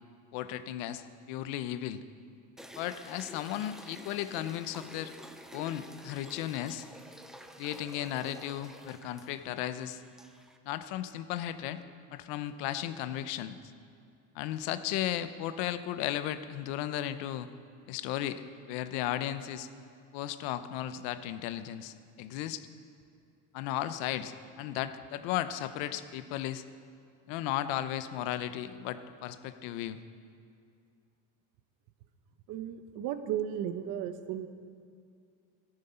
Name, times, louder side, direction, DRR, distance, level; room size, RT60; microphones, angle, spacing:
voice 1, 0.3-2.0 2.8-5.1 5.5-6.9 7.6-10.0 10.7-11.8 12.1-13.6 14.3-17.5 17.9-18.4 18.7-19.7 20.1-22.7 23.5-26.6 27.3-30.0, left 12 dB, 75° left, 11 dB, 0.9 m, -35 dB
sound 1, 2.6-10.6, equal, ahead, 0.3 m, -50 dB
voice 2, 32.5-34.5, right 10 dB, 55° right, 10 dB, 0.9 m, -35 dB
14.0 x 13.0 x 5.6 m, 2.3 s
cardioid pair, 160°, 37 cm